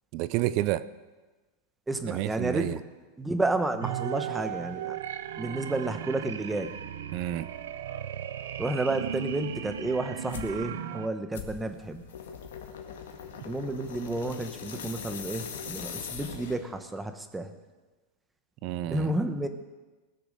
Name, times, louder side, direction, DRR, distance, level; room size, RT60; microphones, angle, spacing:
voice 1, 0.1-0.8 2.1-2.8 7.1-7.5 18.6-19.1, right 15 dB, 50° right, 16 dB, 0.6 m, -29 dB
voice 2, 1.9-2.8 3.2-5.0 5.4-6.7 8.6-12.0 13.4-17.5 18.9-19.5, right 2 dB, 10° right, 8 dB, 1.1 m, -31 dB
sound 1, 3.8-11.1, right 10 dB, 85° right, 0.8 m, -36 dB
sound 2, 10.3-10.6 11.3-16.8, left 7 dB, 85° left, 1.9 m, -41 dB
20.0 x 6.8 x 6.7 m, 1.2 s
supercardioid pair, 140°, 0 cm